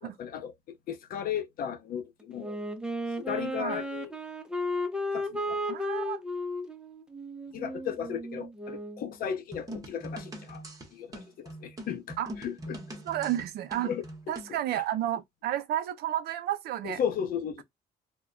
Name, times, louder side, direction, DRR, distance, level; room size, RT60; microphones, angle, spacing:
voice 1, 0.0-2.6 3.2-4.2 5.1-5.6 7.5-10.6 10.9-12.8 13.8-14.0 16.8-17.6, left 8 dB, 60° left, 0.6 m, -35 dB
Wind instrument woodwind instrument, 2.4-9.1, left 1 dB, 5° right, 0.4 m, -34 dB
voice 2, 5.7-6.2 12.2-12.3 13.1-13.9 14.3-17.0, right 12 dB, 70° right, 0.5 m, -31 dB
sound 1, 9.5-14.6, right 1 dB, 20° right, 0.8 m, -42 dB
2.2 x 2.1 x 3.5 m
cardioid pair, 110°, 17 cm